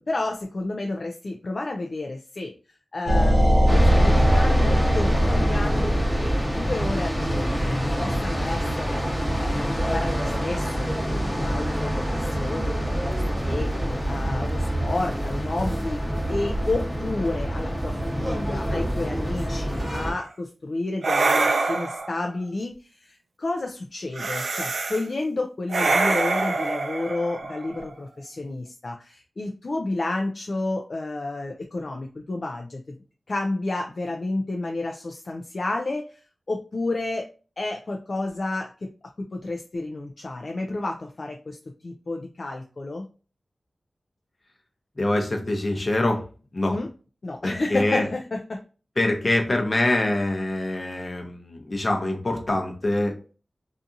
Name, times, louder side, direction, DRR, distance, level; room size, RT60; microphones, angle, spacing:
voice 1, 0.0-2.5 2.9-16.0 16.3-32.9 33.3-36.2 36.5-37.3 37.6-38.9 39.2-41.6 41.8-43.1 46.7-46.9 47.2-48.6, left 2 dB, 55° left, 2 dB, 0.3 m, -31 dB
sound 1, 3.1-7.8, equal, 35° right, 0.7 m, -21 dB
sound 2, 3.7-20.1, equal, ahead, 0.9 m, -26 dB
sound 3, 19.8-20.1 21.0-22.2 24.1-25.0 25.7-27.9, right 3 dB, 80° right, 0.3 m, -25 dB
voice 2, 45.0-46.2 46.5-46.8 47.4-48.1 49.0-53.2, left 1 dB, 40° left, 2 dB, 0.7 m, -24 dB
2.7 x 2.4 x 2.5 m, 0.36 s
wide cardioid pair, 70°, 0 cm